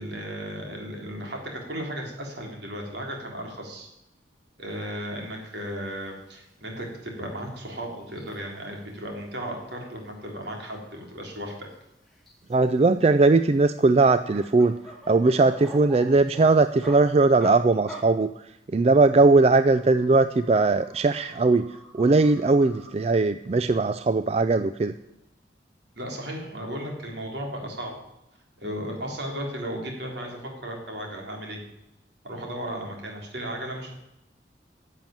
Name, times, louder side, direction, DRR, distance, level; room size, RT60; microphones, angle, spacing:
voice 1, 0.0-3.9 4.6-11.7 26.0-28.0 28.6-31.6 32.2-33.9, equal, 70° right, 0 dB, 3.8 m, -35 dB
sound 1, 5.0-5.2 5.5-6.0 6.3-6.4 6.8-6.9 7.2-9.2 9.5-9.7 9.9-11.7 12.0-12.8 13.3-17.0 17.4-17.5 17.9-18.0 19.1-22.9, right 1 dB, ahead, 3.7 m, -46 dB
voice 2, 12.5-14.7 15.1-18.3 18.7-21.7 21.9-24.9, right 3 dB, 35° right, 11 dB, 0.3 m, -19 dB
11.5 x 7.5 x 8.9 m, 0.90 s
head